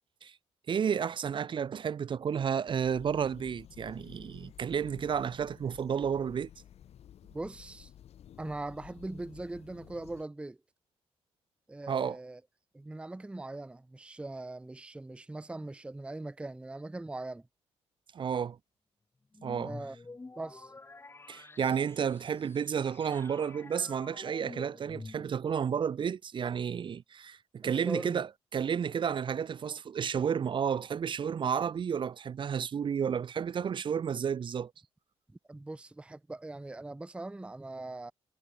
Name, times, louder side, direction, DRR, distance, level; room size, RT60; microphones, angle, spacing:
voice 1, 0.7-6.5 11.9-12.2 18.1-18.6 19.4-19.7 21.3-28.3 28.5-34.7, right 7 dB, 45° right, 0.7 m, -31 dB
sound 1, 2.6-10.2, left 10 dB, 65° left, 1.2 m, -53 dB
voice 2, 7.3-7.9 8.4-10.6 11.7-12.4 12.7-17.5 19.6-20.0 20.4-20.7 27.6-28.2 35.5-38.1, right 2 dB, 10° right, 0.6 m, -41 dB
sound 2, 19.3-25.6, left 3 dB, 20° left, 1.8 m, -49 dB
cardioid pair, 90°, 11 cm